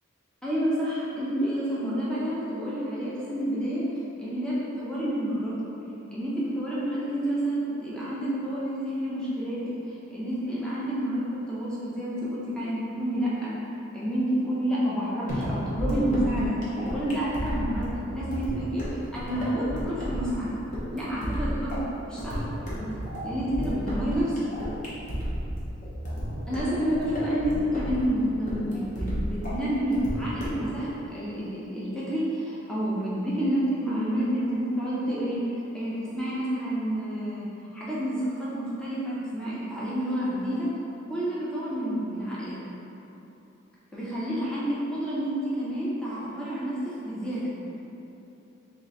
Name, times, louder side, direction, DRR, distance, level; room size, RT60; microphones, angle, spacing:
voice 1, 0.4-3.9 4.2-5.6 6.1-13.6 13.9-20.5 20.9-21.8 22.0-22.4 23.2-24.4 26.5-37.5 37.7-40.7 41.1-42.5 43.9-47.5, equal, 5° left, -9 dB, 0.6 m, -29 dB
sound 1, 15.3-30.7, equal, 35° left, 0.8 m, -32 dB
3.2 x 3.0 x 3.9 m, 3.0 s
head